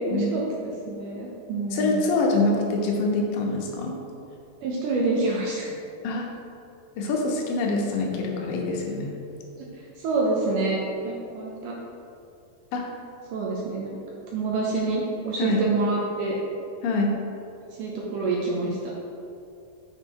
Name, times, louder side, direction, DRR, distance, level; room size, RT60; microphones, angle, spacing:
voice 1, 0.1-2.0 4.6-5.7 9.6-9.7 10.0-11.7 13.3-14.0 14.3-16.4 17.8-18.9, right 3 dB, 75° right, -3 dB, 2.0 m, -27 dB
voice 2, 1.7-4.0 6.0-6.3 7.0-9.1 12.7-12.9 15.4-15.6 16.8-17.1, left 2 dB, 75° left, 0 dB, 2.4 m, -25 dB
6.4 x 4.8 x 4.6 m, 2.7 s
omnidirectional pair, 4.3 m